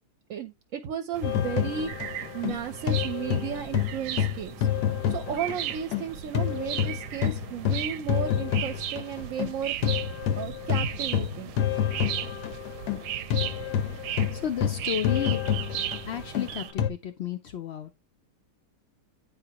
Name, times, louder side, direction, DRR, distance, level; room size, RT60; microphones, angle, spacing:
voice 1, 0.3-4.7 5.1-9.7 10.4-11.5, right 8 dB, 65° right, 0.9 m, -34 dB
sound 1, 1.1-16.7, right 11 dB, 90° right, 1.2 m, -37 dB
sound 2, 1.2-6.1 6.3-16.9, left 9 dB, 90° left, 1.2 m, -28 dB
voice 2, 14.3-15.4 16.1-17.9, left 9 dB, 70° left, 0.6 m, -32 dB
9.5 x 4.1 x 2.8 m
omnidirectional pair, 1.7 m